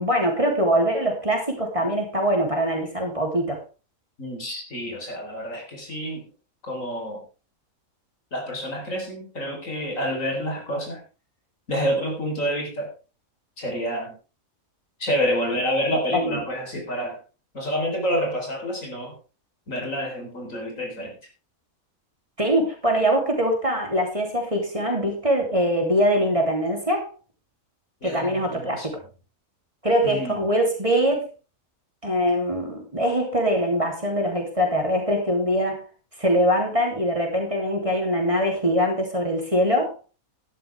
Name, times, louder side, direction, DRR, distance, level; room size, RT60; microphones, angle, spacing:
voice 1, 0.0-3.6 16.1-16.4 22.4-27.1 28.0-28.8 29.8-31.3 32.0-35.8 36.2-39.9, equal, 25° right, 1 dB, 3.2 m, -23 dB
voice 2, 4.2-6.3 6.7-7.2 8.3-11.0 11.7-12.9 13.6-14.2 15.0-17.2 17.5-19.2 19.7-21.2 28.0-28.9 30.0-30.4, equal, 65° left, 1 dB, 4.5 m, -28 dB
12.5 x 12.0 x 3.5 m, 0.33 s
omnidirectional pair, 1.5 m